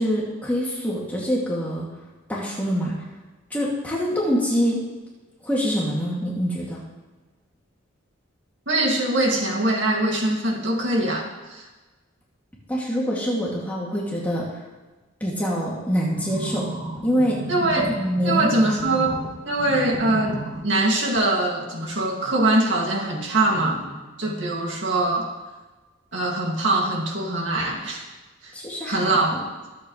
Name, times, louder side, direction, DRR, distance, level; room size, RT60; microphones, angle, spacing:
voice 1, 0.0-1.9 2.3-2.9 3.5-4.8 5.4-6.8 12.7-14.5 15.2-16.7 17.0-17.4 17.8-18.8 28.5-29.4, equal, 10° left, -5 dB, 2.4 m, -25 dB
voice 2, 8.7-11.6 17.5-17.9 18.2-19.2 19.4-25.3 26.1-28.0 28.4-28.5 28.9-29.4, right 2 dB, 65° right, 0 dB, 2.4 m, -23 dB
sound 1, 16.1-19.3 19.6-20.6 21.2-21.3, right 1 dB, 35° right, 3.2 m, -32 dB
24.5 x 8.5 x 3.3 m, 1.2 s
head